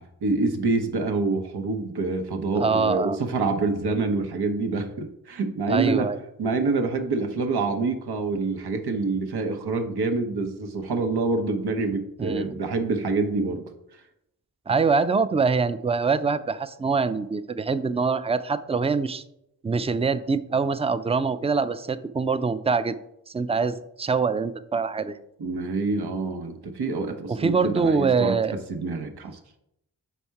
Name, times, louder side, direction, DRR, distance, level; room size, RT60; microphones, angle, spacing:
voice 1, 0.0-6.1 6.4-13.6 25.4-28.4 28.7-29.4, right 3 dB, 85° right, 6 dB, 0.9 m, -26 dB
voice 2, 2.6-3.2 5.7-6.2 12.2-12.6 14.7-19.2 19.6-23.0 23.3-25.2 27.3-28.5, right 4 dB, 15° right, 13 dB, 0.4 m, -24 dB
5.6 x 4.2 x 4.6 m, 0.79 s
cardioid pair, 40°, 38 cm